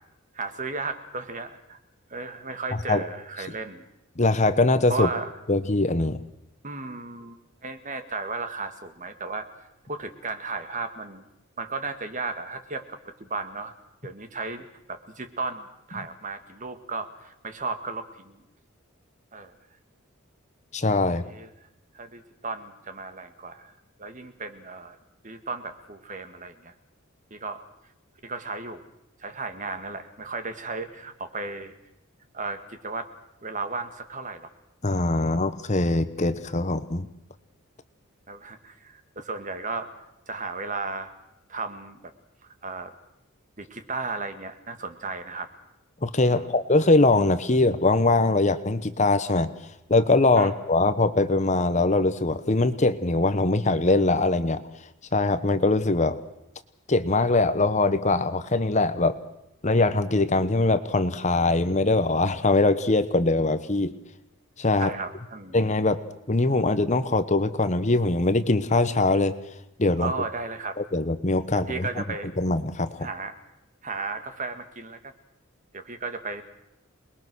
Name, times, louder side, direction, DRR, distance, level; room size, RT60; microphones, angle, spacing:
voice 1, 0.3-1.8 2.1-3.9 4.9-5.3 6.6-9.5 9.9-11.3 11.6-13.7 14.0-18.4 19.3-19.5 21.1-21.5 21.9-23.7 24.0-25.0 25.2-26.7 27.3-27.6 28.2-28.9 29.2-31.7 32.3-33.1 33.4-34.5 35.2-35.4 38.3-39.9 40.3-41.1 41.5-42.1 42.6-42.9 43.6-45.5 46.3-46.5 50.4-50.5 64.8-65.6 70.0-70.8 71.5-72.3 73.0-73.4 73.8-75.1 75.7-76.4, right 3 dB, 40° right, 8 dB, 2.0 m, -34 dB
voice 2, 4.2-5.1 5.5-6.2 20.7-21.2 34.8-37.1 46.0-49.5 49.9-54.6 55.1-56.2 56.9-59.2 59.6-63.9 64.6-64.9 65.5-69.3 69.8-70.1 70.8-71.9 72.4-73.1, left 2 dB, 35° left, 11 dB, 1.1 m, -22 dB
27.5 x 21.0 x 6.3 m, 0.87 s
head